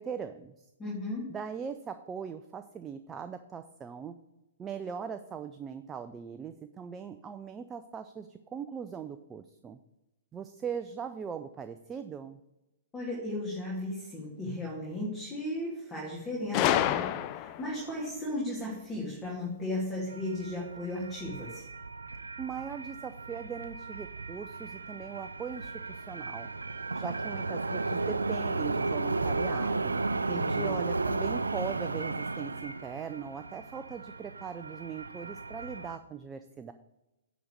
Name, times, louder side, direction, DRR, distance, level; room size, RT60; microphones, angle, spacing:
voice 1, 0.0-0.7 1.3-4.1 4.6-9.8 10.3-12.4 22.4-26.5 26.9-30.0 30.6-36.7, right 7 dB, 20° right, 8 dB, 0.4 m, -40 dB
voice 2, 0.8-1.2 12.9-21.6 30.3-30.7, left 1 dB, 15° left, -5 dB, 2.7 m, -35 dB
Gunshot gunfire, 16.5-17.8, left 11 dB, 35° left, 0.5 m, -28 dB
sound 1, 20.1-36.0, right 3 dB, 90° right, 0.4 m, -34 dB
10.0 x 4.1 x 6.5 m, 0.95 s
hypercardioid pair, 120°, 0 cm